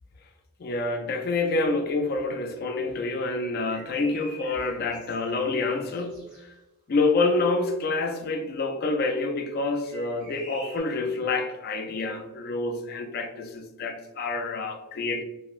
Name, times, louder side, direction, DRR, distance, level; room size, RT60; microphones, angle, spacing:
voice 1, 0.6-6.5 6.9-15.2, left 3 dB, 45° left, 5 dB, 0.3 m, -27 dB
sound 1, 3.7-6.4 9.7-10.8, left 1 dB, 35° right, 0.9 m, -47 dB
3.0 x 2.6 x 2.4 m, 1.0 s
head